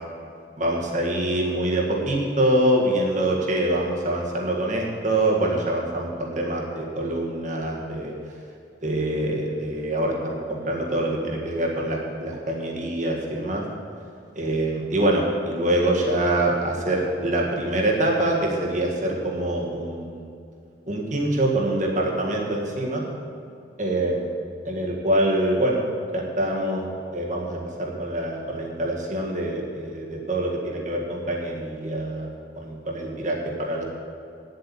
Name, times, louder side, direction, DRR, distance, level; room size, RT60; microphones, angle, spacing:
voice 1, 0.6-8.1 8.8-13.6 14.4-20.3 20.9-23.0 23.8-24.3 24.6-25.8 26.1-26.8 27.1-32.3 32.6-33.8, right 1 dB, 40° right, -1 dB, 1.8 m, -25 dB
9.2 x 8.0 x 8.7 m, 2.6 s
head